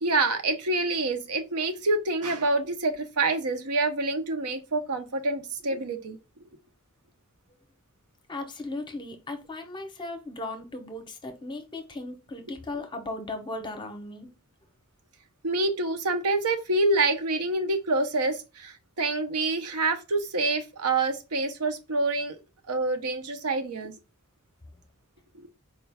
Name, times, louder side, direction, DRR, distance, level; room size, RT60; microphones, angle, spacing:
voice 1, 0.0-6.2 15.4-22.4 22.7-23.9 25.3-25.5, right 2 dB, 85° right, 0.7 m, -27 dB
voice 2, 8.3-14.3, left 2 dB, 20° left, 0.6 m, -37 dB
4.4 x 2.3 x 3.4 m
head